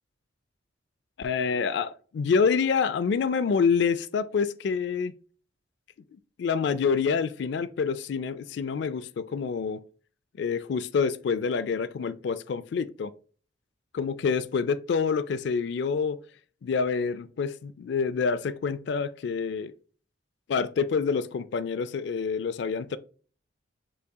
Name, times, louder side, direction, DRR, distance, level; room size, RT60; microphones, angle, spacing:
voice 1, 1.2-5.1 6.4-9.8 10.4-13.1 13.9-16.2 16.6-19.7 20.5-23.0, left 5 dB, 60° left, 0.3 m, -27 dB
5.5 x 3.6 x 2.2 m
head